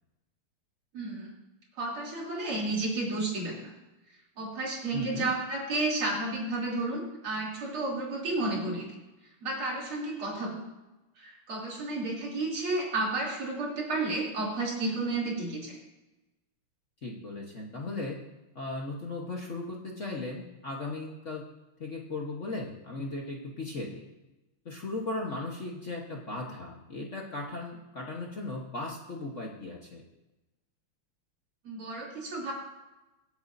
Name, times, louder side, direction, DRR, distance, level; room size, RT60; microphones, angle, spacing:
voice 1, 0.9-1.3 1.8-3.7 4.4-8.9 9.4-10.6 11.2-15.8 31.6-32.5, right 2 dB, 70° right, -4 dB, 4.0 m, -32 dB
voice 2, 4.9-5.3 17.0-18.2 18.5-21.4 21.8-24.0 24.6-30.0, left 2 dB, 40° left, -1 dB, 1.3 m, -37 dB
25.0 x 8.3 x 2.7 m, 1.0 s
omnidirectional pair, 2.4 m